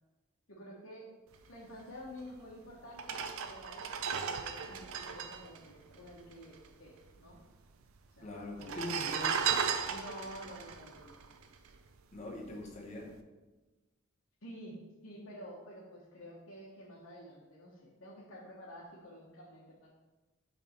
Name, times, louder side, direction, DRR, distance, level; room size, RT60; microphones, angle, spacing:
voice 1, 0.5-1.1 1.5-7.4 8.2-8.5 9.8-11.2 14.4-14.7 15.0-19.9, equal, 75° left, -5 dB, 1.1 m, -50 dB
sound 1, 2.3-2.4 2.9-6.6 6.9-7.0 7.1-7.8 8.5-12.0 12.5-12.7, right 6 dB, 85° right, 0.5 m, -36 dB
voice 2, 8.2-9.5 12.1-13.2, left 2 dB, 35° left, -1 dB, 1.1 m, -42 dB
6.8 x 3.5 x 4.4 m, 1.2 s
head